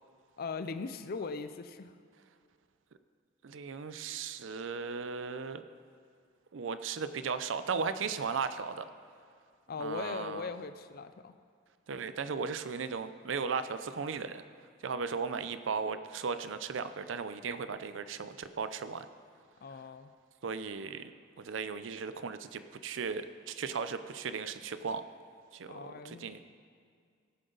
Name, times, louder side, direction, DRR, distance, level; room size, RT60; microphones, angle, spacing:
voice 1, 0.4-1.9 9.7-11.3 19.6-20.1 25.7-26.3, left 4 dB, 50° left, 10 dB, 0.5 m, -39 dB
voice 2, 3.4-5.6 6.5-8.8 9.8-10.5 11.9-14.4 14.8-19.1 20.4-21.1 21.4-25.0 25.5-26.4, right 5 dB, 80° right, 11 dB, 0.5 m, -36 dB
17.5 x 7.8 x 3.9 m, 2.1 s
head